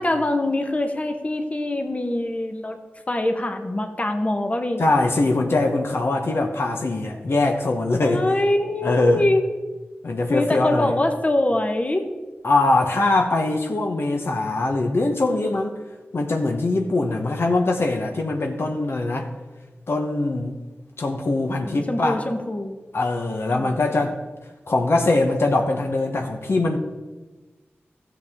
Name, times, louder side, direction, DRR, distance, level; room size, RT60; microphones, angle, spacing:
voice 1, 0.0-2.8 3.1-4.8 8.0-9.4 10.3-12.1 21.6-22.8 23.5-23.7, left 1 dB, 30° left, 5 dB, 1.1 m, -24 dB
voice 2, 4.8-8.3 8.8-9.2 10.0-11.0 12.4-15.8 16.1-19.3 19.9-20.6 21.0-22.2 22.9-24.2 24.7-26.8, left 2 dB, 65° left, 3 dB, 1.0 m, -22 dB
14.5 x 7.0 x 3.6 m, 1.2 s
cardioid pair, 55°, 4 cm